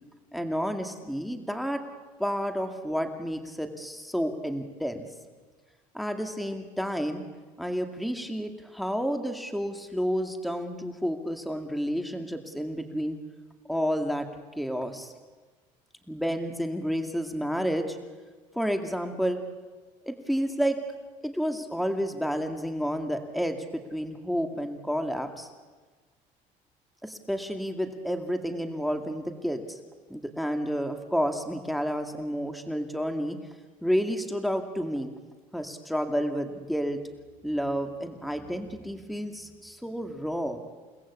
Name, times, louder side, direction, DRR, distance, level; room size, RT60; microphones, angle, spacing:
voice 1, 0.3-1.8 2.2-5.1 5.9-7.2 7.6-13.2 13.7-14.3 14.6-15.1 16.1-18.0 18.5-19.4 20.1-20.8 21.2-25.5 27.0-29.8 30.1-33.4 33.8-35.1 35.5-37.0 37.4-40.6, equal, ahead, 6 dB, 2.3 m, -30 dB
30.0 x 18.5 x 8.5 m, 1.3 s
supercardioid pair, 95°, 16 cm